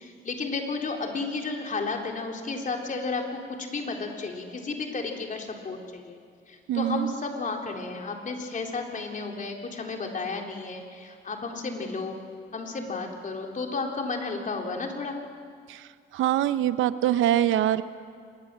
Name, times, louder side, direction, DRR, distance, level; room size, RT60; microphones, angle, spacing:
voice 1, 0.0-6.2 6.5-12.2 12.5-15.2, left 3 dB, 40° left, 2 dB, 3.7 m, -33 dB
voice 2, 6.7-7.1 15.7-17.8, right 12 dB, 85° right, 13 dB, 0.8 m, -24 dB
25.5 x 20.5 x 7.6 m, 2.2 s
cardioid pair, 90°, 20 cm